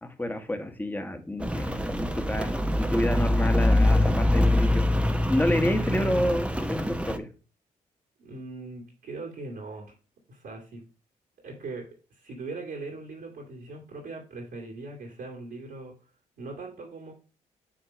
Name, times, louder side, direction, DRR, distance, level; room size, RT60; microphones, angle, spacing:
voice 1, 0.0-4.8 5.3-7.3, left 1 dB, 10° left, 7 dB, 1.4 m, -29 dB
Rain, 1.4-7.2, left 1 dB, 5° right, 0.8 m, -24 dB
voice 2, 8.2-9.9 10.3-10.8 11.4-15.9 16.4-17.1, right 3 dB, 70° right, -2 dB, 2.1 m, -40 dB
8.7 x 3.0 x 5.0 m, 0.36 s
supercardioid pair, 50°, 16 cm